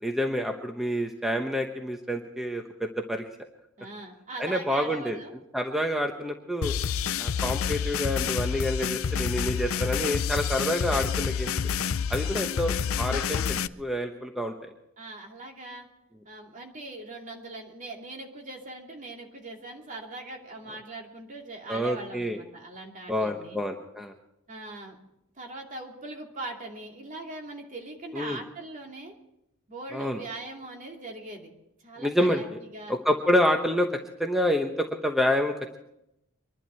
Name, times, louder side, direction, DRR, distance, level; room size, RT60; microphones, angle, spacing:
voice 1, 0.0-3.2 4.4-5.2 5.5-6.7 7.2-11.5 12.1-14.7 21.7-22.4 23.1-24.1 28.1-28.4 29.9-30.2 32.0-32.6 32.9-33.9 34.2-35.5, equal, ahead, 3 dB, 1.0 m, -28 dB
voice 2, 3.8-5.3 12.2-12.4 15.0-15.9 16.2-23.6 24.5-25.0 25.4-29.1 29.7-31.5 31.8-32.4 32.7-33.0, right 2 dB, 40° right, 1 dB, 2.7 m, -41 dB
sound 1, 6.6-13.7, left 7 dB, 70° left, 0.5 m, -28 dB
24.5 x 11.5 x 4.5 m, 0.83 s
head